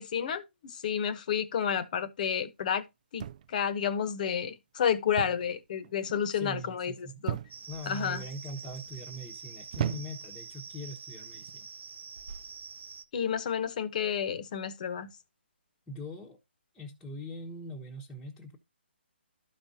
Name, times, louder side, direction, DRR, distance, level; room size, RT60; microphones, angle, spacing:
voice 1, 0.0-2.8 3.1-6.9 7.2-7.4 7.9-8.2 13.1-15.1, left 8 dB, 40° left, 1.0 m, -31 dB
sound 1, 3.2-3.7 5.2-5.5 5.8-6.3 7.3-7.8 8.5-8.9 9.7-10.4 11.3-11.6, right 10 dB, 40° right, 0.3 m, -35 dB
voice 2, 6.3-7.2 7.7-11.7 15.9-16.4 16.7-18.6, equal, 10° left, 1.1 m, -42 dB
sound 2, 7.5-13.0, right 5 dB, 80° right, 0.8 m, -46 dB
12.5 x 5.1 x 2.7 m
hypercardioid pair, 155°, 6 cm